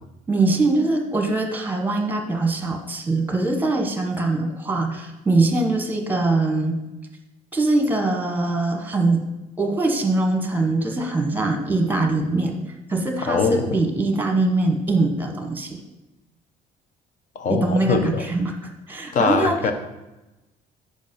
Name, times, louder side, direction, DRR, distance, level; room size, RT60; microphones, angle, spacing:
voice 1, 0.3-6.8 7.5-9.2 9.6-12.6 12.9-15.8 17.5-18.5 18.9-19.6, right 2 dB, 10° right, 3 dB, 1.1 m, -22 dB
voice 2, 13.2-13.8 17.3-18.3 19.1-19.7, left 5 dB, 50° left, 7 dB, 0.8 m, -22 dB
5.2 x 4.9 x 5.3 m, 1.0 s
cardioid pair, 110°, 17 cm